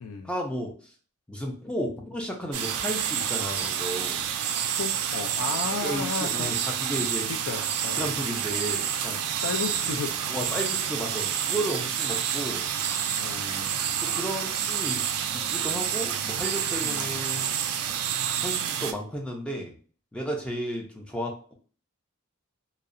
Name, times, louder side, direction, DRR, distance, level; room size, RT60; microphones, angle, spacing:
voice 1, 0.2-0.9 1.3-4.3 5.7-7.3 8.0-9.4 10.3-12.7 14.0-15.1 15.3-17.6 18.4-19.8 20.1-21.5, equal, 5° left, 0 dB, 0.4 m, -33 dB
sound 1, 2.5-18.9, right 9 dB, 90° right, 0.3 m, -29 dB
voice 2, 4.7-6.5 7.4-8.1 9.3-10.3 13.2-13.7 16.8-17.2, left 4 dB, 75° left, 4 dB, 0.4 m, -34 dB
2.7 x 2.0 x 2.4 m, 0.42 s
head